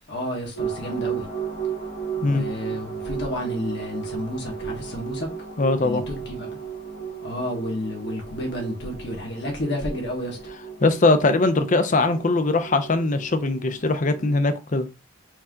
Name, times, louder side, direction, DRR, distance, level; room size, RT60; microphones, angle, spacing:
voice 1, 0.1-1.3 2.2-5.3 5.8-6.5 7.2-10.4, left 1 dB, 55° left, 1.6 m, -31 dB
sound 1, 0.5-14.4, right 7 dB, 80° left, 2.0 m, -35 dB
voice 2, 5.6-6.0 10.8-14.9, left 2 dB, 40° left, 0.6 m, -21 dB
4.5 x 2.8 x 3.7 m
head